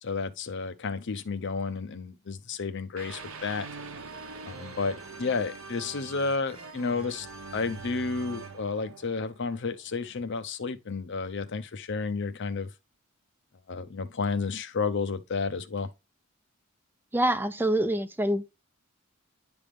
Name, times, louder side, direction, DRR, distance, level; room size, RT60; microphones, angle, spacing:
voice 1, 0.0-3.7 4.5-7.3 7.5-12.7 13.7-15.9, left 4 dB, 60° left, 0.7 m, -31 dB
sound 1, 3.0-9.9, right 4 dB, 70° right, 1.0 m, -43 dB
voice 2, 17.1-18.5, right 1 dB, 10° right, 0.3 m, -26 dB
10.0 x 3.5 x 3.3 m
head